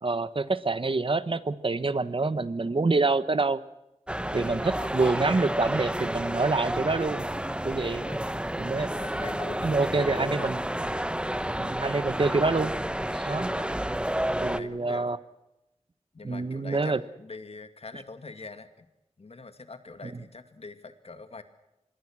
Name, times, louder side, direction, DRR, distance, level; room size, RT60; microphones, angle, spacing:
voice 1, 0.0-3.6 4.3-7.2 7.6-8.1 8.6-8.9 9.6-10.6 11.6-12.7 13.1-13.5 14.4-15.2 16.2-17.0, right 3 dB, 45° right, 14 dB, 1.3 m, -26 dB
sound 1, 4.1-14.6, right 1 dB, 10° right, 1.1 m, -30 dB
voice 2, 4.6-5.0 7.7-8.2 9.0-10.6 11.5-11.8 13.0-13.1 14.4-15.1 16.1-18.9 19.2-21.4, left 3 dB, 60° left, 9 dB, 2.3 m, -44 dB
26.0 x 21.0 x 6.3 m, 0.90 s
wide cardioid pair, 70°, 12 cm